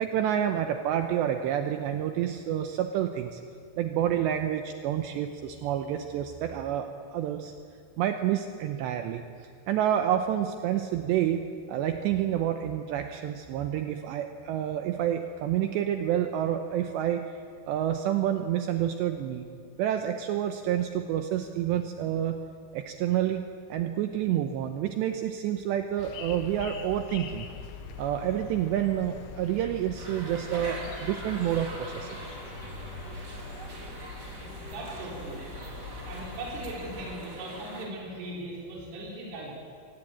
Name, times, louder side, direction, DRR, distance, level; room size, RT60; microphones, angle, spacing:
voice 1, 0.0-3.4 3.8-7.5 8.0-9.2 9.7-17.3 17.7-19.5 19.8-22.4 22.7-27.5 28.0-32.1, right 10 dB, 80° right, 6 dB, 2.7 m, -28 dB
sound 1, 26.0-37.2, left 5 dB, 70° left, 3.7 m, -43 dB
sound 2, 30.0-37.9, right 1 dB, 25° right, 3.2 m, -42 dB
voice 2, 34.4-35.4 36.1-39.5, right 2 dB, 55° right, -4 dB, 5.9 m, -39 dB
25.0 x 18.0 x 8.8 m, 2.3 s
omnidirectional pair, 5.7 m